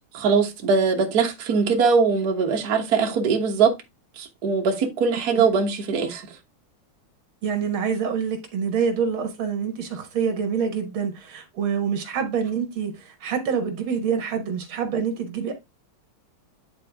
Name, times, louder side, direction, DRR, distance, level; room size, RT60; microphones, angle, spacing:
voice 1, 0.1-3.7 4.2-6.2, right 5 dB, 50° right, 1.6 m, -21 dB
voice 2, 7.4-15.5, right 6 dB, 75° right, 2.2 m, -26 dB
9.8 x 4.0 x 3.4 m
omnidirectional pair, 2.3 m